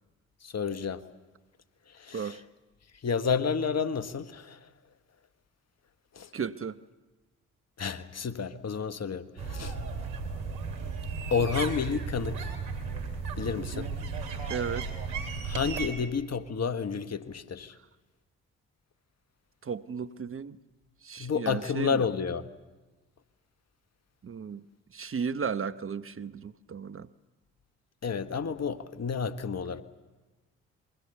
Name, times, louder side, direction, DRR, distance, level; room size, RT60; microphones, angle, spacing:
voice 1, 0.4-1.0 1.9-2.4 3.0-4.7 6.1-6.3 7.8-9.8 11.3-12.5 13.4-13.9 15.4-17.8 21.2-22.5 28.0-29.8, left 6 dB, 45° left, 1.6 m, -30 dB
voice 2, 6.3-6.8 13.6-13.9 14.5-14.9 19.6-20.6 21.0-22.0 24.2-24.6 24.9-27.1, right 6 dB, 35° right, 1.0 m, -34 dB
sound 1, 9.4-15.9, right 5 dB, 85° right, 3.1 m, -35 dB
28.0 x 22.5 x 6.8 m
hypercardioid pair, 45°, 35 cm